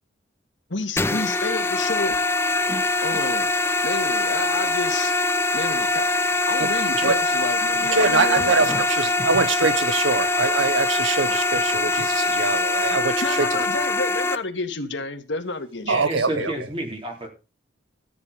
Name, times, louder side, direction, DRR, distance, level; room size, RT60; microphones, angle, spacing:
voice 1, 0.7-2.2 3.0-3.5 3.8-5.2 5.5-6.1 6.5-8.9 13.2-15.9 16.4-16.5, left 3 dB, 70° left, 1.8 m, -30 dB
sound 1, 1.0-14.4, left 2 dB, 15° left, 0.6 m, -23 dB
voice 2, 7.9-13.5 15.9-16.5, right 4 dB, 80° right, 1.1 m, -23 dB
voice 3, 15.8-17.3, right 1 dB, 25° right, 3.6 m, -30 dB
14.0 x 9.5 x 5.1 m
head